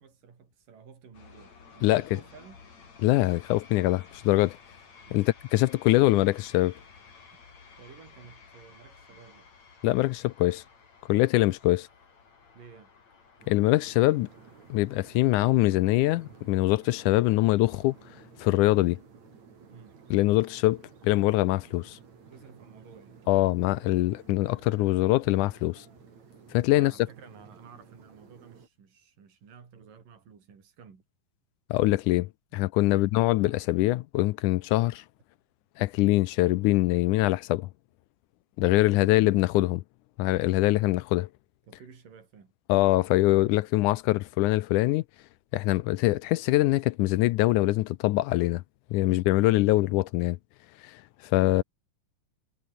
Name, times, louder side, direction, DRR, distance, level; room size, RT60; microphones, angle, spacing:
voice 1, 0.0-2.6 5.1-5.3 7.8-9.5 12.5-12.9 19.7-20.0 22.3-23.2 26.7-31.0 32.9-33.1 38.7-39.2 41.6-42.5 49.1-49.5, right 6 dB, 75° right, 5.6 m, -52 dB
sound 1, 1.1-18.1, left 5 dB, 55° left, 5.3 m, -54 dB
voice 2, 3.0-4.6 5.1-5.3 5.5-6.7 9.8-10.6 11.1-11.9 13.5-14.3 14.7-17.9 18.4-19.0 20.1-22.0 23.3-25.9 26.5-26.9 31.7-35.0 35.8-37.7 38.6-39.8 40.2-41.3 42.7-45.0 45.5-48.6 48.9-50.4 50.8-51.6, left 18 dB, 80° left, 2.0 m, -23 dB
sound 2, 13.4-28.7, right 6 dB, 55° right, 4.7 m, -53 dB
omnidirectional pair, 3.9 m